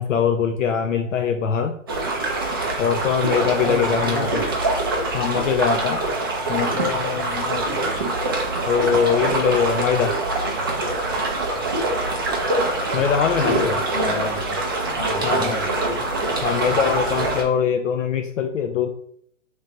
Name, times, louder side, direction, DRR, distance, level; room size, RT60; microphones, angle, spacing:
voice 1, 0.0-1.7 2.8-4.4 5.1-6.1 6.5-7.9 8.7-10.2 12.9-13.7 15.2-15.6 16.4-18.9, left 7 dB, 70° left, 5 dB, 0.5 m, -22 dB
sound 1, 1.9-17.4, right 2 dB, 20° right, 0.3 m, -24 dB
voice 2, 3.6-4.5 7.8-8.0 13.4-14.6 15.0-16.4, left 3 dB, 35° left, -1 dB, 1.3 m, -30 dB
3.3 x 3.1 x 3.9 m, 0.66 s
figure-of-eight pair, 125°, 39 cm